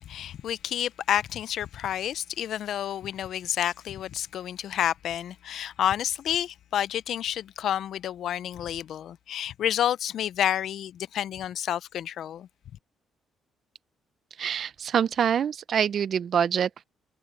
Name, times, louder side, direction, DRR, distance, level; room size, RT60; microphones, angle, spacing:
voice 1, 0.1-12.5, left 10 dB, 70° left, 0.5 m, -29 dB
voice 2, 14.4-16.8, right 8 dB, 55° right, 0.5 m, -25 dB
cardioid pair, 90°, 0 cm